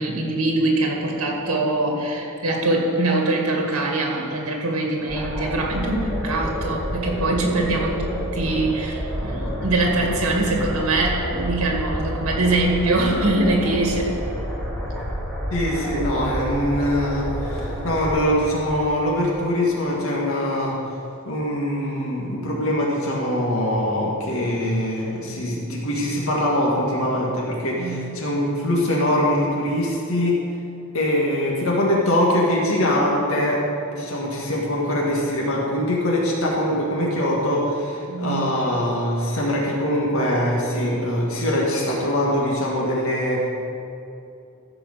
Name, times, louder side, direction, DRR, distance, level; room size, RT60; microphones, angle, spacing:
voice 1, 0.0-14.2 27.8-28.1 38.1-38.5, right 2 dB, 90° right, 0 dB, 1.9 m, -23 dB
sound 1, 5.1-19.3, equal, ahead, 1.8 m, -29 dB
voice 2, 15.5-20.8 21.3-30.3 30.9-33.6 33.9-43.5, left 1 dB, 70° left, -4 dB, 2.0 m, -23 dB
15.0 x 5.0 x 6.6 m, 2.7 s
head